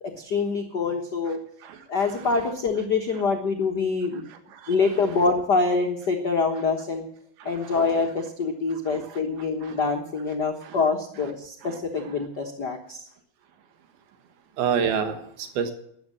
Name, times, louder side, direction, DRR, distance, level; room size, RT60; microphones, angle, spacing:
voice 1, 0.0-1.4 1.9-4.3 4.7-7.1 7.4-13.1, left 4 dB, 90° left, 3 dB, 0.9 m, -25 dB
voice 2, 7.4-7.7 8.9-9.0 9.7-9.8 14.6-15.7, right 7 dB, 90° right, 8 dB, 3.4 m, -27 dB
13.0 x 10.5 x 7.3 m, 0.70 s
omnidirectional pair, 4.2 m